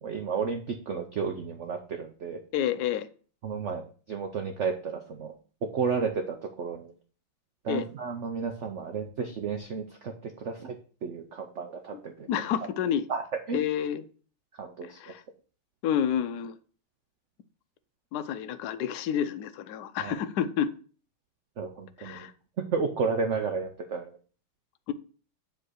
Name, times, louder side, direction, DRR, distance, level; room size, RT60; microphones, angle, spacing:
voice 1, 0.0-2.4 3.4-5.3 5.6-6.9 7.6-10.8 11.0-12.3 13.1-13.2 13.5-13.6 14.6-15.2 20.0-20.1 21.6-22.3 22.7-24.1, right 5 dB, 85° right, 5 dB, 0.6 m, -32 dB
voice 2, 2.5-3.1 7.7-7.9 12.3-13.1 13.5-14.0 14.8-15.2 15.8-16.6 18.1-20.7 22.0-22.3 24.9-25.0, left 9 dB, 70° left, 11 dB, 1.0 m, -29 dB
7.6 x 3.8 x 6.3 m, 0.40 s
omnidirectional pair, 2.2 m